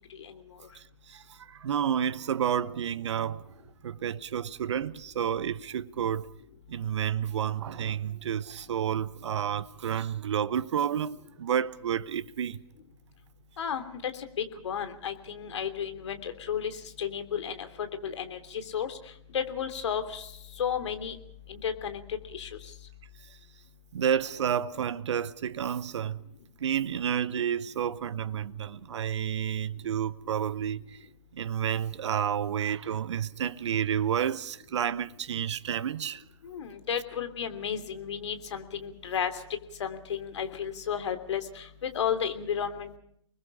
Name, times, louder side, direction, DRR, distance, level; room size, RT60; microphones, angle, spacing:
voice 1, 0.7-3.4 3.8-6.3 6.7-12.6 23.3-23.4 23.9-26.2 26.6-31.0 31.3-36.2, right 9 dB, 60° right, 0.9 m, -30 dB
voice 2, 13.6-14.1 14.4-19.0 19.3-20.3 20.6-21.2 21.5-22.5 36.4-39.3 39.8-43.0, left 8 dB, 60° left, 3.1 m, -33 dB
30.0 x 21.0 x 4.9 m
figure-of-eight pair, 120°, 17 cm